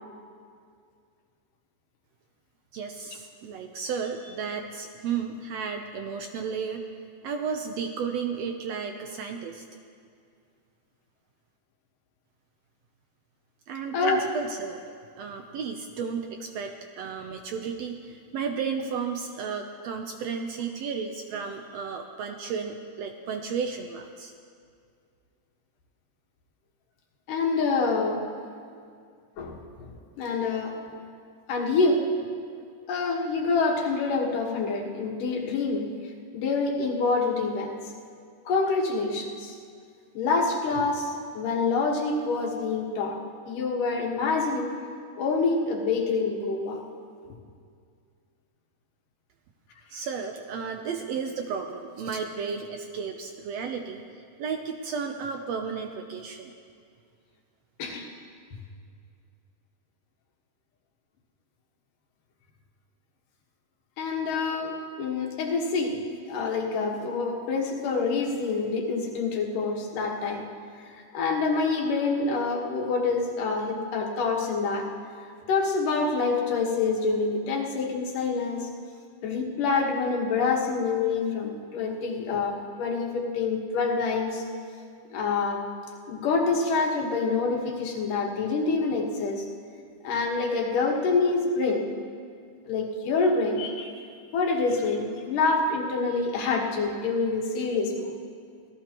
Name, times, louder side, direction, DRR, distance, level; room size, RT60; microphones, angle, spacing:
voice 1, 2.7-6.9 7.2-9.6 13.7-14.8 15.2-24.3 49.9-56.5, right 6 dB, 70° right, 4 dB, 1.6 m, -33 dB
voice 2, 13.9-14.3 27.3-28.3 29.4-31.0 31.5-32.1 32.9-35.9 36.3-37.7 38.5-39.5 40.1-43.2 43.5-44.8 45.2-46.8 57.8-58.1 64.0-66.0 66.3-70.5 70.8-74.9 75.5-78.7 79.2-84.4 85.1-85.7 86.1-89.5 90.0-91.9 92.7-93.9 94.3-98.1, left 4 dB, 90° left, 0 dB, 3.1 m, -26 dB
26.0 x 17.5 x 3.0 m, 2.3 s
omnidirectional pair, 3.6 m